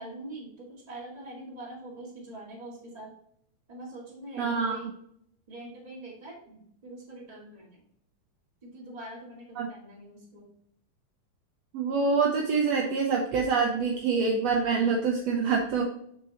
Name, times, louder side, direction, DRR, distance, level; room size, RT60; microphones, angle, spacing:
voice 1, 0.0-3.1 3.7-4.9 5.5-7.8 8.6-10.5, right 1 dB, 15° right, -4 dB, 1.4 m, -44 dB
voice 2, 4.4-4.9 9.6-9.7 11.7-15.8, right 5 dB, 85° right, 0 dB, 1.4 m, -26 dB
6.2 x 5.9 x 2.9 m, 0.70 s
omnidirectional pair, 4.1 m